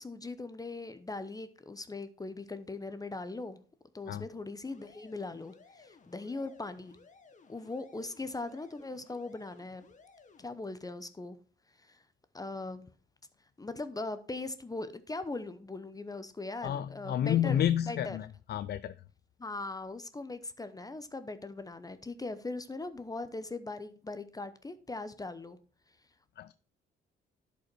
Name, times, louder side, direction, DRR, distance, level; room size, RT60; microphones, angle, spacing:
voice 1, 0.0-3.6 3.9-7.0 7.5-9.8 10.4-11.4 11.8-12.0 12.3-12.9 13.6-18.2 19.4-25.6, left 3 dB, 20° left, 0.7 m, -40 dB
sound 1, 4.6-10.5, left 4 dB, 40° left, 1.2 m, -59 dB
voice 2, 16.6-18.9 26.4-26.5, left 10 dB, 55° left, 0.4 m, -30 dB
11.0 x 5.3 x 4.5 m
cardioid pair, 90°, 20 cm